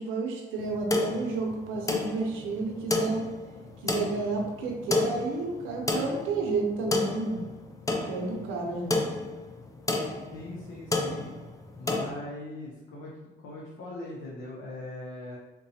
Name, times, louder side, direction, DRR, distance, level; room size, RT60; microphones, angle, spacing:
voice 1, 0.0-3.2 3.8-7.4 8.1-9.0, right 3 dB, 90° right, 1 dB, 0.6 m, -31 dB
sound 1, 0.6-12.1, left 2 dB, 15° left, 0.4 m, -31 dB
voice 2, 10.3-11.3 11.8-13.1 13.4-15.4, left 1 dB, 75° left, -4 dB, 0.6 m, -40 dB
3.9 x 2.2 x 2.7 m, 1.1 s
cardioid pair, 90°, 20 cm